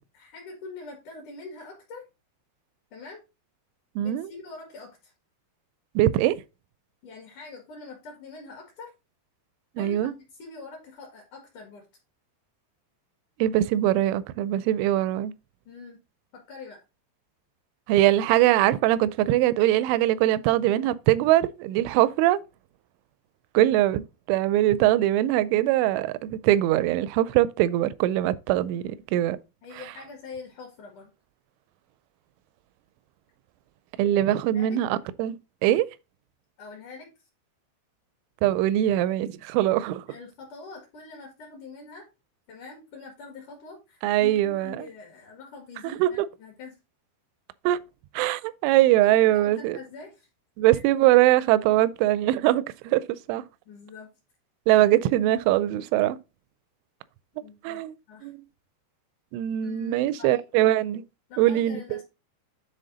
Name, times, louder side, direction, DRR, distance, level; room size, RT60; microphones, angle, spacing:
voice 1, 0.1-2.0 2.9-3.2 4.0-5.1 7.0-8.9 9.8-11.9 15.7-16.0 16.3-16.8 29.6-31.1 34.5-34.8 36.6-37.1 40.1-42.1 42.5-46.8 49.0-50.3 50.7-50.8 53.7-54.1 57.3-58.3 59.6-60.4 61.3-62.0, left 4 dB, 55° left, 2.5 m, -44 dB
voice 2, 4.0-4.3 6.0-6.4 9.8-10.1 13.4-15.3 17.9-22.4 23.5-29.4 34.0-35.9 38.4-40.1 44.0-44.8 46.0-46.3 47.7-47.8 48.1-49.8 50.6-53.4 54.7-56.2 57.6-57.9 58.2-58.4 59.3-61.0 61.4-62.0, right 14 dB, 85° right, 2.9 m, -22 dB
9.9 x 4.0 x 4.0 m
omnidirectional pair, 5.6 m